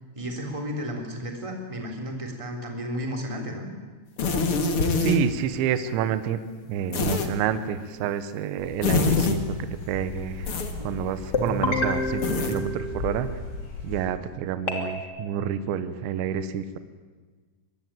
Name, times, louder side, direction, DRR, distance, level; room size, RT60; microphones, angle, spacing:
voice 1, 0.1-3.7 10.8-11.0, equal, 10° right, 2 dB, 2.9 m, -33 dB
sound 1, 4.2-5.2 6.9-7.3 8.8-9.4 10.5-10.7 12.2-12.6, left 4 dB, 50° left, 1.6 m, -24 dB
voice 2, 5.0-6.4 6.7-9.4 9.9-10.5 10.8-13.3 13.8-16.8, right 9 dB, 75° right, 11 dB, 3.3 m, -28 dB
sound 2, 8.6-14.0, left 3 dB, 75° left, 8.3 m, -37 dB
sound 3, 11.3-13.5 14.7-15.0, left 2 dB, 25° left, 2.6 m, -28 dB
25.0 x 20.5 x 9.2 m, 1.4 s
omnidirectional pair, 5.6 m